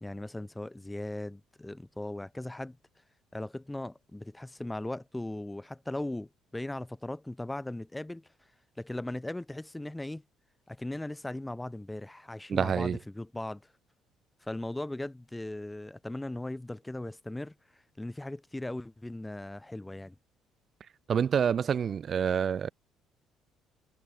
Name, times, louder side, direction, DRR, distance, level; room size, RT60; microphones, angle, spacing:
voice 1, 0.0-2.8 3.3-8.3 8.8-10.2 10.7-13.6 14.4-17.5 18.0-20.2, left 1 dB, 10° left, 0.6 m, -38 dB
voice 2, 12.5-13.0 21.1-22.7, right 7 dB, 50° right, 0.8 m, -27 dB
hypercardioid pair, 55°, 0 cm